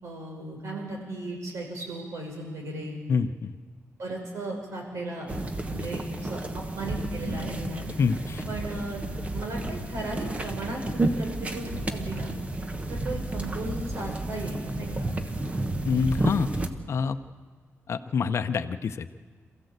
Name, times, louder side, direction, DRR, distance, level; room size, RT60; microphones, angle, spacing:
voice 1, 0.0-3.0 4.0-5.3 5.7-6.4 6.7-7.9 8.5-9.0 9.3-12.3 12.9-15.1, right 2 dB, 70° right, 1 dB, 5.7 m, -36 dB
voice 2, 3.1-3.5 8.0-8.4 15.8-16.5 16.9-17.2 17.9-19.1, left 5 dB, 55° left, 8 dB, 0.7 m, -26 dB
sound 1, 5.3-16.7, right 2 dB, 25° right, 1.2 m, -31 dB
27.0 x 15.0 x 8.1 m, 1.5 s
wide cardioid pair, 170°, 5 cm